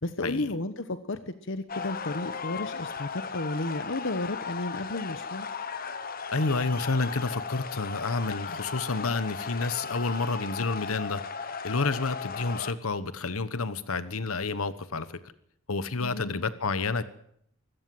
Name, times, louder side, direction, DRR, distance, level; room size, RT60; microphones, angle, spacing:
voice 1, 0.0-5.5 16.0-16.4, left 2 dB, 60° left, 11 dB, 1.1 m, -33 dB
sound 1, 1.7-12.7, left 5 dB, 45° left, 1.3 m, -36 dB
voice 2, 6.3-15.2 15.7-17.1, left 3 dB, 85° left, 14 dB, 1.2 m, -30 dB
24.5 x 17.0 x 7.8 m, 0.69 s
head